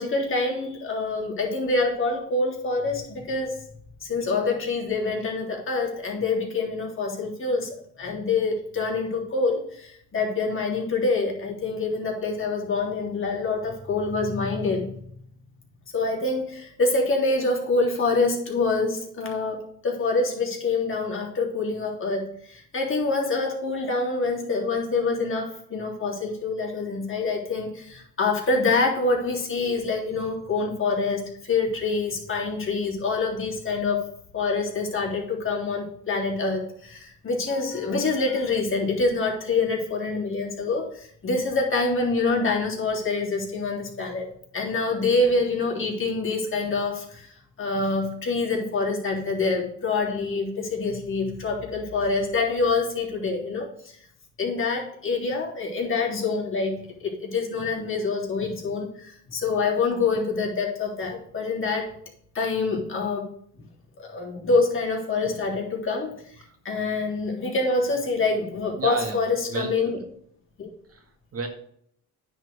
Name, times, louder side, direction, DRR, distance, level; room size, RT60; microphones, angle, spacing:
voice 1, 0.0-3.6 4.0-15.0 15.9-54.0 54.4-61.9 62.3-63.3 64.0-66.4 66.6-69.9 70.6-70.7, left 3 dB, 45° left, -2 dB, 3.6 m, -26 dB
voice 2, 68.7-69.9 70.9-71.5, right 4 dB, 50° right, 5 dB, 1.9 m, -33 dB
9.6 x 4.7 x 6.6 m, 0.65 s
cardioid pair, 90°, 30 cm